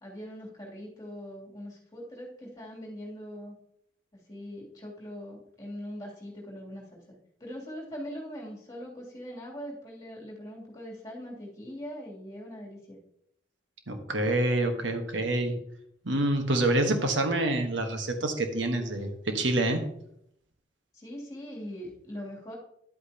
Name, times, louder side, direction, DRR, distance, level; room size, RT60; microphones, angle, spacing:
voice 1, 0.0-3.5 4.1-13.0 20.9-22.6, equal, 20° left, -3 dB, 2.9 m, -41 dB
voice 2, 13.9-15.5 16.0-19.9, right 2 dB, 85° right, 5 dB, 1.3 m, -27 dB
10.5 x 8.3 x 2.9 m, 0.73 s
head